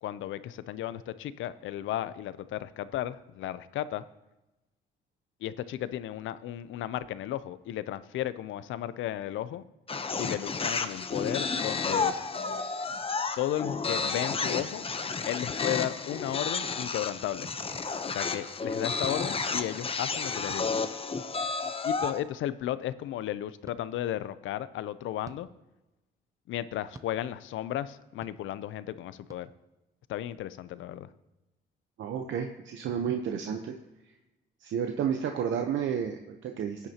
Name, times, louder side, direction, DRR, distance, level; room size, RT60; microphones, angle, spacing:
voice 1, 0.0-4.0 5.4-9.6 10.2-12.1 13.4-14.8 15.2-17.5 18.1-20.8 21.8-25.5 26.5-29.5 30.1-31.1, left 12 dB, 80° left, 15 dB, 0.5 m, -34 dB
sound 1, 9.9-22.2, left 4 dB, 30° left, 0.8 m, -32 dB
sound 2, 17.7-17.9 19.0-19.2 20.5-20.7 22.0-22.2 23.7-23.8 25.2-25.4 26.9-27.1 28.2-28.4 29.3-29.4, right 2 dB, 15° right, 0.6 m, -46 dB
voice 2, 32.0-33.7 34.6-36.9, right 8 dB, 70° right, 4 dB, 0.9 m, -31 dB
16.0 x 9.6 x 2.9 m, 1.0 s
cardioid pair, 90°, 20 cm